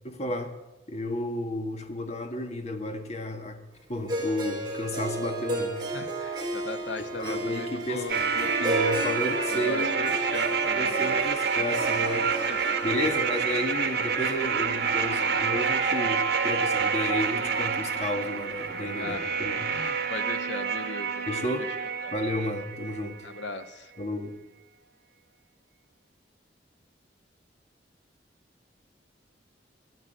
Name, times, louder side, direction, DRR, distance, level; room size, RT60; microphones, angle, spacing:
voice 1, 0.0-0.5 0.9-3.6 3.9-5.9 7.0-10.2 10.7-12.3 12.8-19.7 21.3-21.7 22.1-23.3 24.0-24.3, left 1 dB, 40° left, 6 dB, 1.7 m, -32 dB
Harp, 4.1-16.2, right 2 dB, 25° right, 4.3 m, -34 dB
voice 2, 5.9-8.3 9.5-11.2 12.4-12.6 15.0-15.2 19.0-19.2 19.7-21.2 21.6-22.2 23.2-23.9, left 3 dB, 80° left, 10 dB, 1.1 m, -38 dB
sound 1, 8.1-23.1 23.4-23.5, right 6 dB, 65° right, 1.8 m, -28 dB
14.0 x 10.5 x 7.8 m, 1.1 s
head